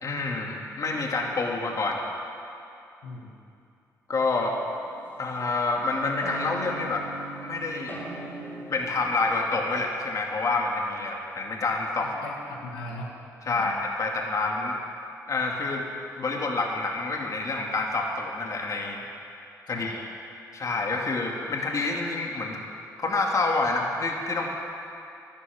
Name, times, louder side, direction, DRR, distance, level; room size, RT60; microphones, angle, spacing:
voice 1, 0.0-2.0 4.1-4.5 5.2-7.0 7.4-8.0 8.7-12.1 13.4-14.8 15.3-15.9 16.2-19.0 19.7-20.1 20.5-22.6 23.0-24.5, left 3 dB, 50° left, 0 dB, 2.5 m, -28 dB
sound 1, 4.7-5.5 6.2-9.8, right 1 dB, 30° left, 4.4 m, -39 dB
voice 2, 12.0-13.2 13.5-13.7 19.7-20.0, left 1 dB, 85° left, -2 dB, 1.7 m, -39 dB
12.0 x 11.5 x 8.7 m, 2.6 s
supercardioid pair, 60°, 7 cm